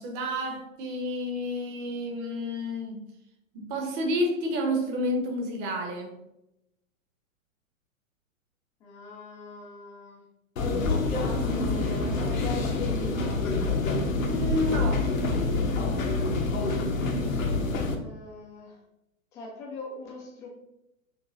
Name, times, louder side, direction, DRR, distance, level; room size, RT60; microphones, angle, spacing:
voice 1, 0.0-3.0 3.5-6.2 14.2-15.1, equal, 35° right, 3 dB, 1.0 m, -30 dB
voice 2, 8.8-10.2 11.1-13.4 17.9-18.8 19.3-20.5, left 3 dB, 10° left, -1 dB, 0.3 m, -41 dB
sound 1, 10.6-18.0, left 3 dB, 70° left, 0.9 m, -27 dB
6.1 x 3.0 x 2.5 m, 0.86 s
figure-of-eight pair, 110°, 41 cm